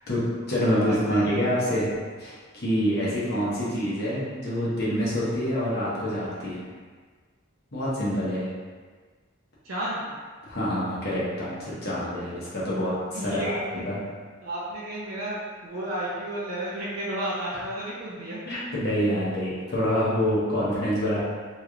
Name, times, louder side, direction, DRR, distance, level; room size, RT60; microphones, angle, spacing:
voice 1, 0.1-1.9 2.2-6.7 7.7-8.5 10.4-14.0 18.4-21.2, equal, 50° left, -8 dB, 0.9 m, -26 dB
voice 2, 0.7-1.5 3.1-3.4 9.6-10.1 13.1-13.8 14.4-18.4, right 1 dB, 90° right, -7 dB, 0.6 m, -32 dB
3.0 x 3.0 x 2.4 m, 1.5 s
head